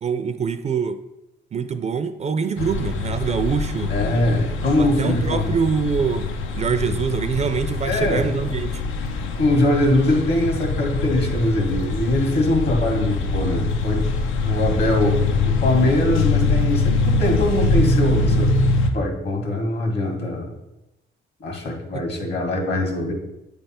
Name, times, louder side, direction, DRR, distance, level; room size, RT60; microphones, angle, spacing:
voice 1, 0.0-1.0 1.5-3.9 4.8-6.3 6.5-8.8 21.9-22.0, right 6 dB, 35° right, 10 dB, 0.4 m, -24 dB
sound 1, 2.6-18.9, left 3 dB, 85° left, 0.6 m, -23 dB
voice 2, 3.9-5.5 7.8-8.3 9.4-18.5 18.9-20.5 21.4-23.1, left 1 dB, 55° left, 2 dB, 1.7 m, -22 dB
8.4 x 3.4 x 4.2 m, 0.93 s
cardioid pair, 90°, 20 cm